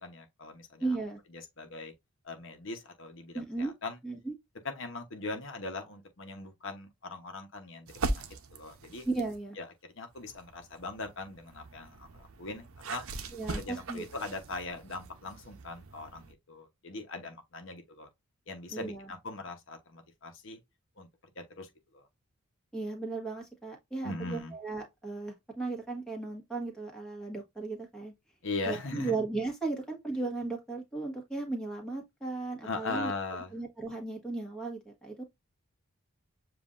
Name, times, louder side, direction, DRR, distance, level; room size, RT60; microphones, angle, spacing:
voice 1, 0.0-0.9 1.3-1.9 2.2-4.0 4.6-8.2 8.5-9.0 9.6-9.7 10.0-13.0 13.5-18.1 18.5-20.6 21.0-21.1 21.3-22.0 24.0-24.5 28.4-29.2 32.6-33.5, left 3 dB, 60° left, 0.9 m, -40 dB
voice 2, 0.8-1.2 3.3-3.7 4.0-4.3 9.0-9.6 13.3-14.0 18.7-19.1 22.7-28.1 28.7-33.1 33.5-35.2, right 3 dB, 5° left, 1.4 m, -36 dB
sound 1, 7.9-9.4 10.1-16.3, right 3 dB, 75° right, 0.7 m, -40 dB
7.3 x 2.5 x 2.5 m
head